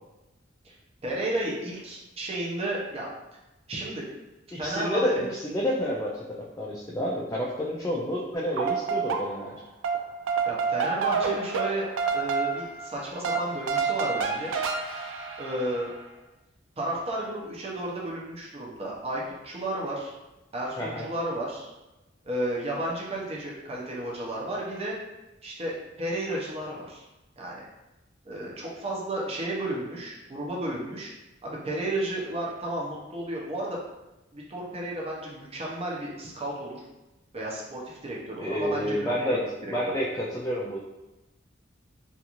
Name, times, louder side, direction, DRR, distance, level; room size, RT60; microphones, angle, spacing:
voice 1, 1.0-3.1 3.7-4.0 4.6-5.3 10.5-11.9 12.1-14.5 15.4-15.9 16.8-20.1 20.5-21.7 22.2-25.0 25.4-27.0 27.4-27.6 28.2-31.1 31.4-33.8 34.3-36.8 37.3-39.4 39.6-40.0, right 1 dB, 30° right, -4 dB, 0.6 m, -33 dB
voice 2, 4.5-6.2 6.6-9.6 20.8-21.1 38.4-39.4 39.7-40.8, equal, 15° left, -4 dB, 0.3 m, -29 dB
sound 1, 8.3-9.6 9.8-16.0, right 5 dB, 80° right, 0.3 m, -29 dB
2.5 x 2.4 x 2.9 m, 1.0 s
head